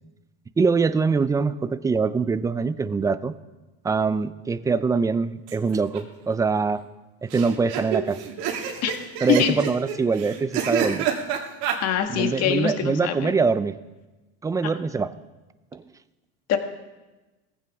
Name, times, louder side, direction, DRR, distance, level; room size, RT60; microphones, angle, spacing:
voice 1, 0.6-3.3 3.8-6.8 7.2-8.2 9.2-11.1 12.1-13.8 14.4-15.1 15.7-15.8, right 4 dB, 10° right, 15 dB, 0.4 m, -23 dB
sound 1, 5.5-6.0 6.3-6.4 6.6-6.7 7.3-11.8, right 8 dB, 70° right, 2.0 m, -28 dB
voice 2, 11.8-13.3 16.5-16.6, left 9 dB, 50° left, 6 dB, 1.6 m, -23 dB
18.5 x 15.0 x 3.5 m, 1.1 s
supercardioid pair, 125°, 32 cm